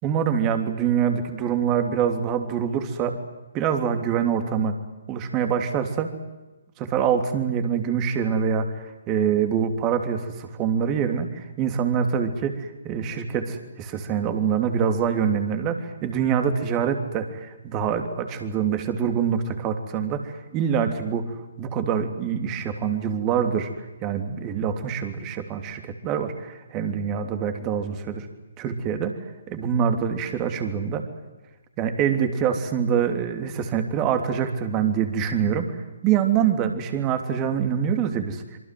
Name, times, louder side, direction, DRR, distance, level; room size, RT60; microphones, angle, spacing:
voice 1, 0.0-3.2 3.5-4.8 5.1-6.1 6.8-8.7 9.1-21.3 21.6-23.7 24.0-28.3 28.6-29.2 29.5-31.0 31.8-35.7 36.0-38.4, right 7 dB, 25° right, 6 dB, 3.2 m, -25 dB
26.5 x 24.5 x 7.8 m, 1.1 s
figure-of-eight pair, 135°, 0 cm